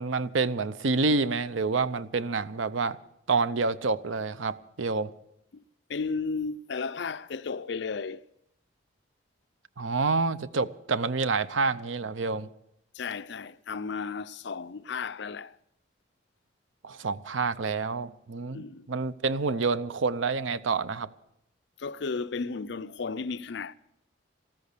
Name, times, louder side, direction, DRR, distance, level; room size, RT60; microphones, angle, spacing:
voice 1, 0.0-3.0 3.3-5.1 9.8-12.5 16.8-21.1, right 4 dB, 80° right, 0.7 m, -28 dB
voice 2, 5.9-8.2 12.9-15.6 18.5-18.9 21.8-23.7, left 4 dB, 65° left, 0.5 m, -34 dB
14.0 x 13.5 x 6.7 m
head